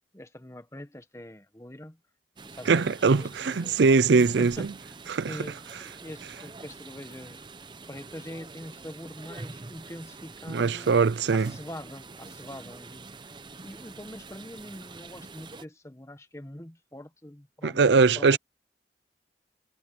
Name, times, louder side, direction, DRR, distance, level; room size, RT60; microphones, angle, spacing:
voice 1, 0.1-2.0 2.4-3.8 4.1-4.7 5.3-5.6 6.0-7.5 7.9-11.0 11.3-13.1 13.6-18.4, left 1 dB, 15° left, 1.3 m, -43 dB
sound 1, 2.4-15.7, right 3 dB, 25° right, 0.7 m, -45 dB
voice 2, 2.7-4.7 5.1-5.4 10.5-11.5 17.6-18.4, right 4 dB, 85° right, 0.5 m, -21 dB
head